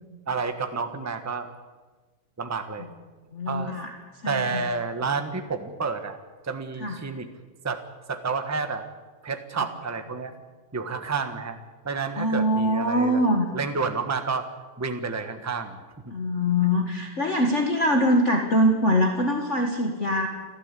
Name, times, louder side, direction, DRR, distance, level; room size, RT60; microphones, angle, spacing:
voice 1, 0.3-1.5 2.4-2.9 3.5-3.7 4.2-6.2 6.4-7.3 7.6-7.8 8.1-8.9 9.2-10.3 10.7-11.6 11.8-13.2 13.5-14.5 14.8-16.1 16.7-16.8, right 4 dB, 10° right, 7 dB, 1.0 m, -30 dB
voice 2, 3.3-3.9 4.2-4.6 6.8-7.0 12.2-13.5 16.1-20.3, equal, 35° left, 2 dB, 1.8 m, -23 dB
30.0 x 12.5 x 8.4 m, 1.3 s
omnidirectional pair, 2.4 m